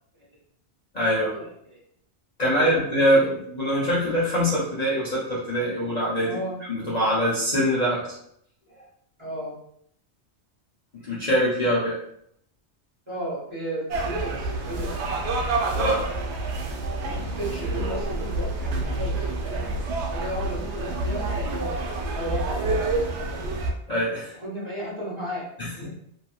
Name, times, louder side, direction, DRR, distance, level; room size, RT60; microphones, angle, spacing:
voice 1, 0.9-1.4 2.4-6.4 6.7-8.1 11.0-12.0 15.8-16.0 16.3-16.5 23.9-24.3 25.6-25.9, equal, 40° left, -8 dB, 0.8 m, -23 dB
voice 2, 6.2-6.6 9.2-9.5 13.1-15.0 17.2-19.6 20.1-23.5 24.4-25.9, right 1 dB, 25° right, -8 dB, 1.4 m, -34 dB
sound 1, 13.9-23.7, right 2 dB, 75° right, 0.8 m, -28 dB
3.0 x 2.8 x 2.3 m, 0.70 s
omnidirectional pair, 1.2 m